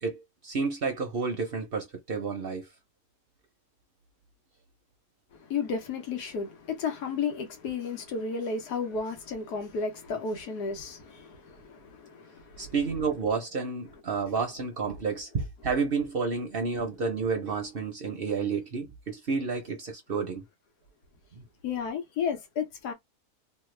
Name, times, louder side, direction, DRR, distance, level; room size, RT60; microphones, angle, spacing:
voice 1, 0.0-2.7 12.6-20.4 21.3-21.4, right 5 dB, 50° right, 0.7 m, -30 dB
voice 2, 5.5-12.7 21.6-22.9, left 5 dB, 80° left, 1.5 m, -33 dB
3.3 x 2.1 x 3.2 m
omnidirectional pair, 1.7 m